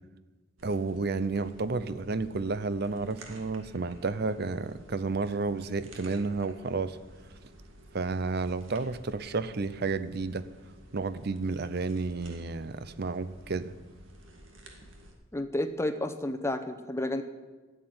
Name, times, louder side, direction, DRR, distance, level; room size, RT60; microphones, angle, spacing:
voice 1, 0.6-7.0 7.9-10.5 10.9-13.7, right 3 dB, 50° right, 14 dB, 0.6 m, -31 dB
sound 1, 0.6-15.1, right 1 dB, 75° right, 2.1 m, -52 dB
voice 2, 15.3-17.2, left 1 dB, 15° left, 7 dB, 0.8 m, -31 dB
13.0 x 8.0 x 9.5 m, 1.2 s
head